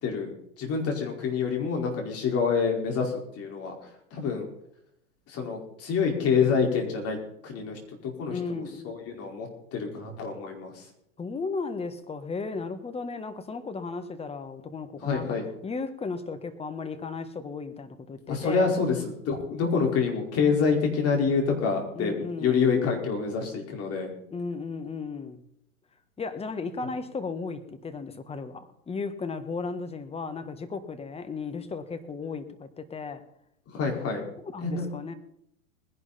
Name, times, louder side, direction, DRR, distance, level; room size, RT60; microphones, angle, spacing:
voice 1, 0.0-3.7 4.1-4.5 5.3-7.2 7.4-10.8 15.0-15.4 18.3-24.1 33.7-34.2 34.6-34.9, left 5 dB, 35° left, 1 dB, 4.8 m, -27 dB
voice 2, 8.3-9.3 11.2-15.4 15.6-18.7 21.9-22.7 24.3-25.4 26.2-33.2 34.4-35.1, left 4 dB, 15° left, 9 dB, 1.5 m, -35 dB
20.0 x 11.0 x 4.2 m, 0.75 s
hypercardioid pair, 105°, 43 cm